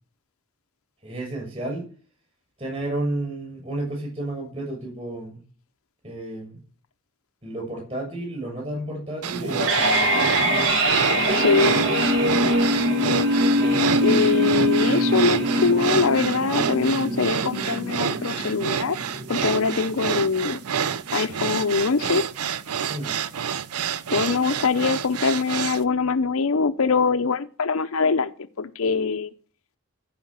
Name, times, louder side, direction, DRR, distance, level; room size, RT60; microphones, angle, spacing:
voice 1, 1.0-1.8 2.6-5.4 6.0-6.6 7.4-10.1 22.9-23.1, right 1 dB, 25° right, -1 dB, 6.9 m, -31 dB
sound 1, 9.2-25.8, right 7 dB, 85° right, 0.6 m, -28 dB
sound 2, 9.3-20.3, equal, 65° right, 2.7 m, -23 dB
voice 2, 11.3-11.8 14.0-19.0 19.3-20.6 21.1-22.2 24.1-29.3, left 4 dB, 70° left, 9 dB, 0.6 m, -23 dB
15.0 x 5.2 x 7.4 m, 0.43 s
head